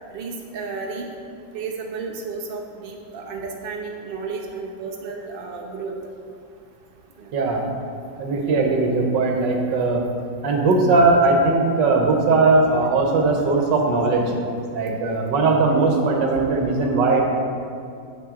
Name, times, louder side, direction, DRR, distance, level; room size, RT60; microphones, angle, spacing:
voice 1, 0.1-1.1 1.5-5.9 7.2-7.3 15.1-15.2, right 4 dB, 45° right, 0 dB, 0.7 m, -32 dB
voice 2, 7.3-7.6 8.2-10.1 10.4-14.4 14.7-17.2, right 3 dB, 70° right, 2 dB, 1.6 m, -19 dB
8.8 x 6.6 x 3.7 m, 2.5 s
omnidirectional pair, 2.0 m